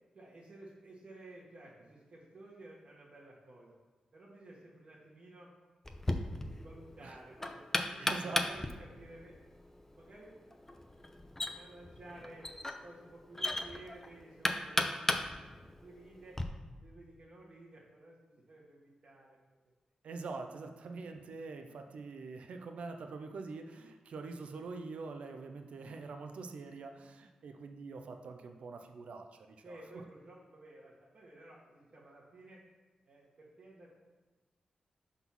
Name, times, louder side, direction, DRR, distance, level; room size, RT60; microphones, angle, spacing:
voice 1, 0.1-3.7 4.1-5.5 5.9-6.2 6.6-7.6 7.9-9.4 9.9-10.5 11.5-12.5 12.8-15.1 15.4-15.5 15.8-16.4 16.8-19.4 29.6-32.6 33.0-33.9, right 2 dB, 55° right, -6 dB, 1.4 m, -54 dB
Knock, 5.8-16.4, left 1 dB, 15° left, 0.6 m, -37 dB
voice 2, 8.0-8.4 20.0-29.3 29.7-29.8, right 4 dB, 75° right, 5 dB, 0.5 m, -44 dB
5.4 x 4.0 x 5.9 m, 1.2 s
cardioid pair, 80°, 2 cm